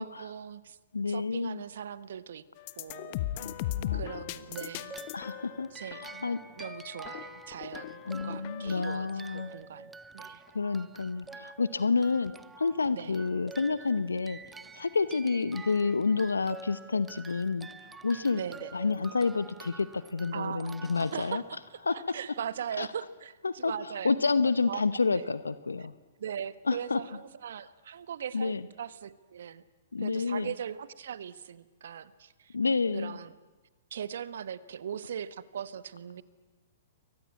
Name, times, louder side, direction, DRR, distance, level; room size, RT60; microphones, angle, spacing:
voice 1, 0.0-2.4 2.8-3.6 3.9-5.0 5.7-10.4 12.9-13.1 18.3-18.8 20.3-20.7 21.1-21.6 21.9-24.2 24.7-24.8 25.1-25.2 26.2-29.6 30.0-32.6 32.9-33.3 33.9-36.2, right 8 dB, 65° right, 16 dB, 1.3 m, -40 dB
voice 2, 0.9-1.6 3.4-4.0 5.1-5.7 6.0-6.4 8.0-9.5 10.5-14.4 14.7-17.7 18.0-18.4 18.7-21.4 21.9-22.0 22.8-22.9 23.4-23.7 24.0-25.9 26.7-27.0 28.3-28.6 29.9-30.5 32.5-33.2, left 4 dB, 85° left, 15 dB, 0.9 m, -29 dB
sound 1, 2.6-9.0, left 13 dB, 45° left, 1.3 m, -38 dB
sound 2, 4.5-21.9, right 4 dB, 10° right, 0.8 m, -48 dB
28.5 x 23.5 x 8.5 m, 1.2 s
figure-of-eight pair, 115°, 0 cm